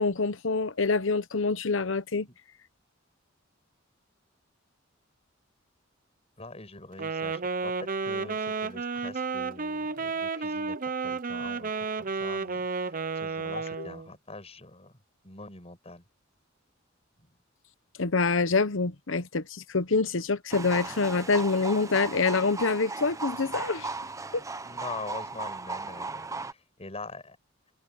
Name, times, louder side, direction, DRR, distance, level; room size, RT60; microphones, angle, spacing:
voice 1, 0.0-2.3 13.8-13.9 18.0-23.9 24.3-24.4, left 4 dB, 70° left, 1.0 m, -26 dB
voice 2, 6.4-14.9 15.2-16.0 17.2-17.3 24.6-27.4, left 3 dB, 30° left, 6.7 m, -44 dB
Wind instrument woodwind instrument, 6.9-14.1, right 4 dB, 45° right, 0.9 m, -32 dB
sound 1, 20.5-26.5, right 3 dB, 15° right, 0.8 m, -36 dB
head